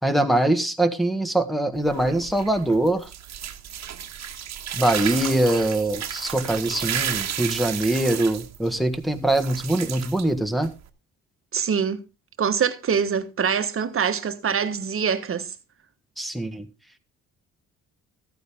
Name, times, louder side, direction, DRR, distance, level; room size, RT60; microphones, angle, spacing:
voice 1, 0.0-3.1 4.7-10.7 16.2-16.7, right 1 dB, ahead, 1.6 m, -23 dB
sound 1, 1.7-10.9, right 9 dB, 60° right, 1.4 m, -33 dB
voice 2, 11.5-12.0 12.4-15.5, right 7 dB, 45° right, 1.4 m, -24 dB
14.5 x 9.3 x 3.6 m
cardioid pair, 90°, 30 cm